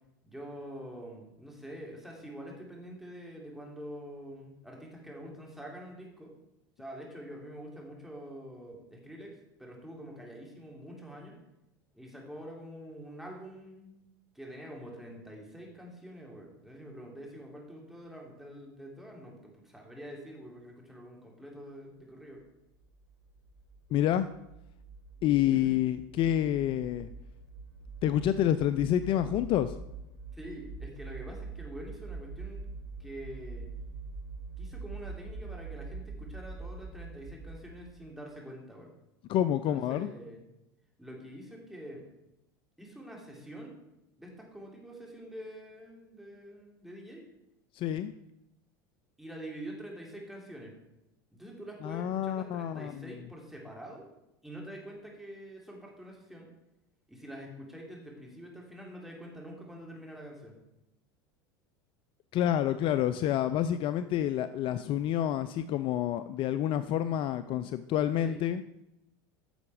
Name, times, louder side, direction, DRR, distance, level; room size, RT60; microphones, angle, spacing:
voice 1, 0.2-6.3 6.8-11.3 11.9-14.0 14.3-22.4 25.5-25.8 30.3-32.6 33.0-33.7 34.6-38.9 39.6-40.4 41.0-42.0 42.8-43.7 44.2-47.2 49.2-50.7 51.3-54.1 54.4-56.5 57.1-60.5 68.2-68.4, equal, 5° right, -1 dB, 3.2 m, -46 dB
sound 1, 22.8-38.1, right 3 dB, 90° left, 4.2 m, -44 dB
voice 2, 23.9-24.3 25.2-27.1 28.0-29.8 39.3-40.1 47.7-48.1 51.8-53.0 62.3-68.6, left 11 dB, 45° left, 13 dB, 0.5 m, -28 dB
10.0 x 6.9 x 4.9 m, 0.87 s
hypercardioid pair, 90°, 12 cm